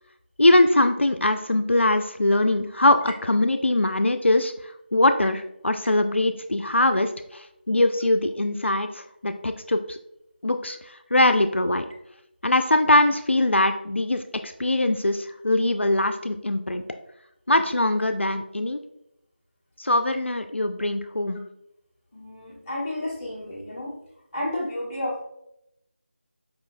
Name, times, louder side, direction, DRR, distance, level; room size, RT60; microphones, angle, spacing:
voice 1, 0.4-10.0 10.4-11.9 12.4-16.8 17.5-18.8 19.8-21.4, left 1 dB, 90° left, 7 dB, 0.4 m, -22 dB
voice 2, 22.1-23.9 24.3-25.2, left 1 dB, 20° left, -7 dB, 0.9 m, -31 dB
4.8 x 3.0 x 2.5 m, 0.79 s
figure-of-eight pair, 165°, 6 cm